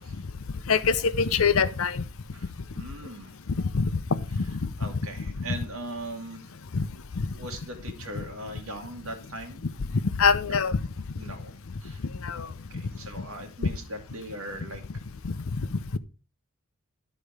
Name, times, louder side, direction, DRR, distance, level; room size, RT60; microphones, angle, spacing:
voice 1, 0.7-2.0 3.6-3.9 4.3-4.7 6.7-6.9 7.2-7.3 8.2-8.3 10.2-10.8 12.2-12.5 15.2-15.3 15.7-15.8, left 5 dB, 75° left, 0.7 m, -24 dB
voice 2, 2.3-3.4 4.8-6.5 7.4-9.6 10.4-10.6 11.2-11.5 11.8-12.0 12.4-14.8, right 1 dB, 80° right, 2.0 m, -40 dB
12.0 x 4.2 x 5.0 m
head